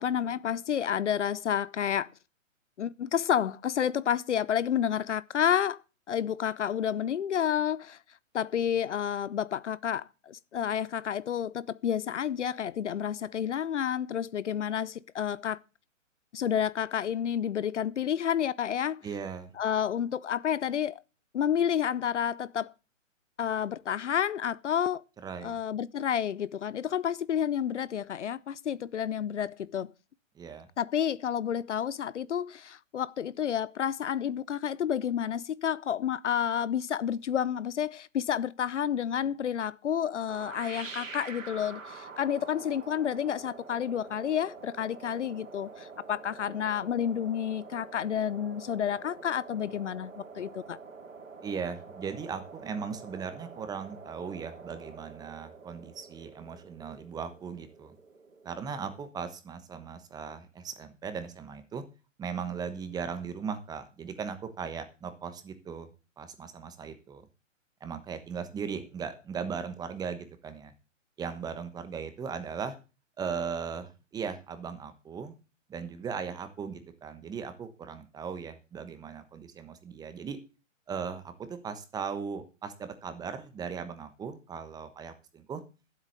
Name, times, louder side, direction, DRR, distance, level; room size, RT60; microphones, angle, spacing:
voice 1, 0.0-2.1 2.8-5.8 6.1-8.0 8.3-15.6 16.3-19.0 19.6-21.0 21.3-22.7 23.4-25.0 25.4-29.9 30.8-50.8, left 9 dB, 65° left, 0.8 m, -30 dB
voice 2, 19.0-19.5 25.2-25.6 30.3-30.7 51.4-57.9 58.4-61.8 62.2-65.9 66.2-67.3 67.8-70.7 71.2-72.8 73.2-75.3 75.7-80.4 80.9-85.6, right 6 dB, 10° right, 1.1 m, -38 dB
sound 1, 40.3-59.1, right 4 dB, 85° right, 2.7 m, -47 dB
12.5 x 8.1 x 6.7 m
hypercardioid pair, 135°, 38 cm